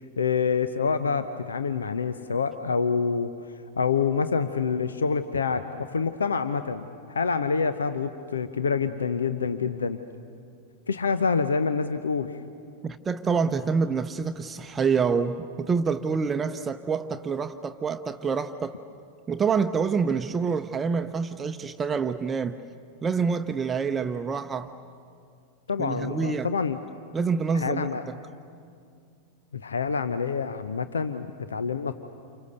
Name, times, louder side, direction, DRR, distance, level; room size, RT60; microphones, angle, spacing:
voice 1, 0.0-3.3 3.8-10.0 10.9-12.4 25.7-26.8 27.5-28.0 29.5-31.9, left 5 dB, 70° left, 11 dB, 0.8 m, -27 dB
voice 2, 12.8-18.8 19.3-22.6 23.0-24.7 25.8-26.5 27.1-28.2, right 5 dB, 20° right, 9 dB, 0.8 m, -27 dB
29.0 x 28.5 x 6.8 m, 2.3 s
figure-of-eight pair, 90°, 0 cm